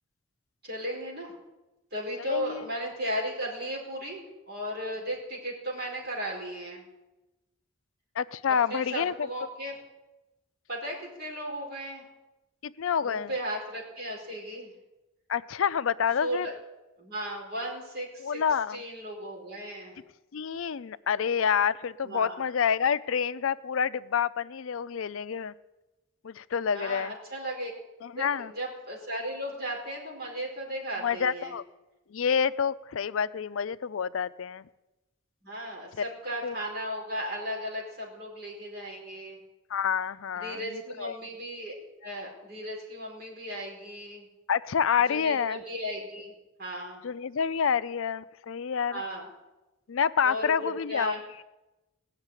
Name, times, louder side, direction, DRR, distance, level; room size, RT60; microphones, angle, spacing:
voice 1, 0.6-1.3 1.9-6.8 8.5-9.8 10.7-12.0 13.0-14.7 16.2-16.5 17.0-18.4 18.7-20.0 22.0-22.4 26.7-27.7 28.2-31.5 35.4-39.4 40.3-41.7 42.0-44.3 45.1-46.3 46.6-47.0 48.9-49.3 50.2-51.2, equal, 50° right, -1 dB, 4.7 m, -36 dB
voice 2, 2.2-2.6 8.2-9.1 12.6-13.3 15.3-16.5 18.2-18.8 20.3-25.5 26.2-27.1 28.0-28.5 31.0-31.6 32.1-34.6 36.4-36.6 39.7-41.2 44.5-45.6 47.0-49.0 49.9-51.1, left 7 dB, 75° left, 16 dB, 0.5 m, -28 dB
17.5 x 6.6 x 9.8 m, 1.0 s
head